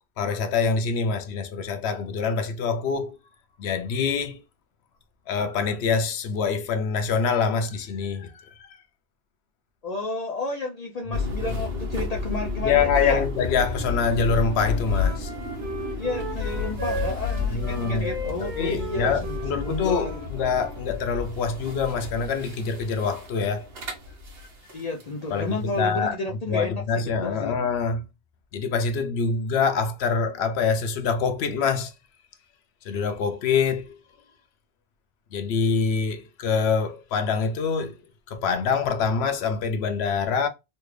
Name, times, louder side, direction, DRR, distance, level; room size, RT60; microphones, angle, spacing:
voice 1, 0.2-3.2 3.6-4.4 5.3-8.8 12.6-15.3 17.5-18.1 18.4-23.7 25.3-26.2 26.5-28.0 28.5-31.9 32.8-34.0 35.3-38.0 38.3-40.5, left 5 dB, 90° left, 0.9 m, -25 dB
voice 2, 9.8-13.2 16.0-20.2 24.7-27.6, left 3 dB, 50° left, 0.5 m, -31 dB
sound 1, 11.1-25.1, left 4 dB, 75° right, 1.3 m, -31 dB
Wind instrument woodwind instrument, 14.4-20.8, right 1 dB, 55° right, 0.8 m, -36 dB
3.2 x 2.4 x 3.2 m
omnidirectional pair, 1.0 m